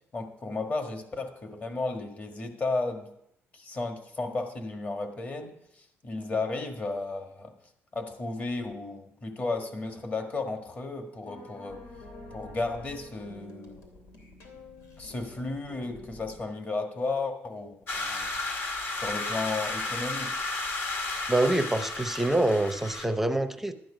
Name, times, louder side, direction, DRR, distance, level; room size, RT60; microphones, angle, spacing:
voice 1, 0.1-3.1 3.5-7.5 7.9-11.8 12.3-13.8 15.0-18.3 18.9-20.4, left 3 dB, 35° left, 5 dB, 1.6 m, -34 dB
sound 1, 11.2-16.4, left 2 dB, 85° left, 2.8 m, -48 dB
sound 2, 17.9-23.1, left 2 dB, 50° left, 1.8 m, -33 dB
voice 2, 21.3-23.7, right 1 dB, 5° right, 9 dB, 0.6 m, -25 dB
12.5 x 9.2 x 5.0 m, 0.76 s
cardioid pair, 135°, 5 cm